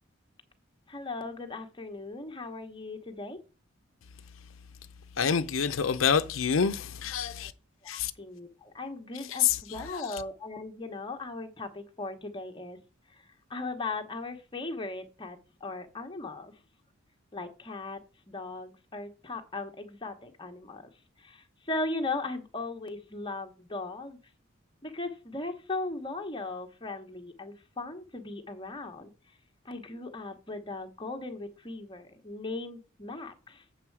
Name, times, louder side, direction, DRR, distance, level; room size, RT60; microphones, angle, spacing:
voice 1, 0.9-3.4 7.2-7.3 7.9-12.8 13.5-16.5 17.3-18.0 18.3-20.8 21.2-24.2 24.8-29.1 29.6-33.6, left 3 dB, 25° left, 1.1 m, -38 dB
voice 2, 5.2-7.5 7.9-8.1 9.4-9.6, left 7 dB, 85° left, 0.6 m, -26 dB
7.6 x 6.4 x 4.7 m
head